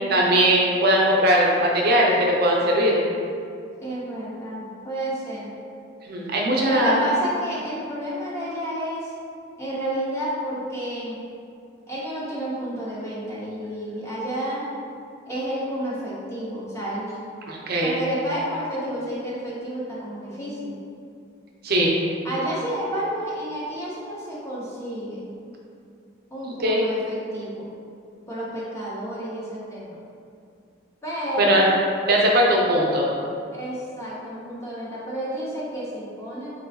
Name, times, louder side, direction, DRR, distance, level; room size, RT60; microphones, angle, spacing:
voice 1, 0.1-3.0 6.1-7.0 17.5-17.9 21.6-21.9 26.5-26.9 31.4-31.6 32.1-33.1, right 1 dB, 50° right, -2 dB, 0.5 m, -19 dB
voice 2, 3.8-5.5 6.7-9.1 9.6-11.2 11.9-14.7 15.2-17.2 17.8-20.8 22.2-25.3 26.3-27.7 28.3-30.0 31.0-31.6 33.5-36.5, equal, 15° left, -8 dB, 0.8 m, -30 dB
4.1 x 2.3 x 4.0 m, 2.4 s
head